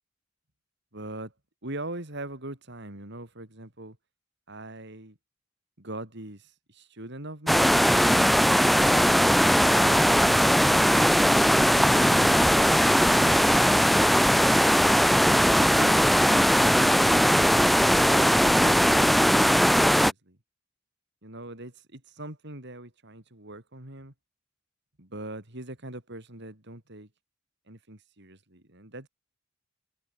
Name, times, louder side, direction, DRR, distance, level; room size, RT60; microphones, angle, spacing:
voice 1, 0.9-1.3 1.6-4.0 4.5-5.2 5.8-7.8 18.0-20.4 21.2-24.1 25.0-27.1 27.7-29.1, right 1 dB, 60° right, 5.1 m, -41 dB
sound 1, 7.5-20.1, equal, ahead, 0.3 m, -20 dB
head